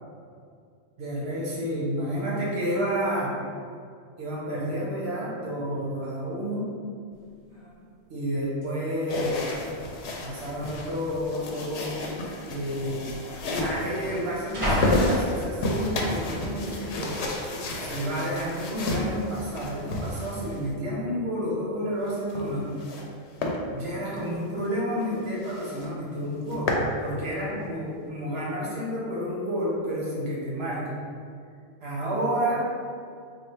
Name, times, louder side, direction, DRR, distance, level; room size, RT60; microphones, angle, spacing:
voice 1, 1.0-3.4 4.2-6.7 8.1-9.5 10.2-12.1 12.5-13.0 13.5-17.2 17.8-22.7 23.7-26.7 27.0-30.9 31.8-32.7, equal, 70° right, -6 dB, 1.2 m, -30 dB
sound 1, 7.1-7.2 7.5-7.9 8.6-8.7 9.5-10.0 10.2-10.4 11.2-11.4 12.4-12.5 12.7-15.9 16.4-16.8, equal, 30° right, 1.4 m, -31 dB
sound 2, 9.1-20.7 22.0-23.1 23.4-23.6 24.1-24.2 24.6-24.7 25.0-25.1 25.4-25.9 26.2-26.9, left 1 dB, 80° left, 0.9 m, -32 dB
3.2 x 2.5 x 4.3 m, 2.3 s
omnidirectional pair, 1.1 m